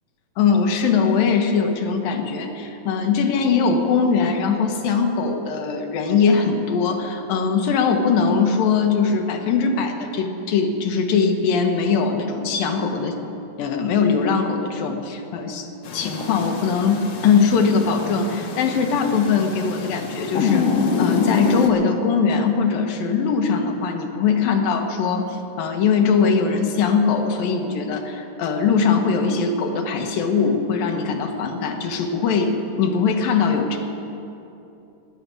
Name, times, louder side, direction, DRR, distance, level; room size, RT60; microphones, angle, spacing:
voice 1, 0.4-13.2 13.6-15.7 15.9-20.7 21.0-33.8, left 5 dB, 85° left, 3 dB, 3.0 m, -21 dB
sound 1, 15.9-21.7, left 5 dB, 60° left, 1.8 m, -26 dB
18.5 x 6.9 x 9.7 m, 2.8 s
omnidirectional pair, 4.0 m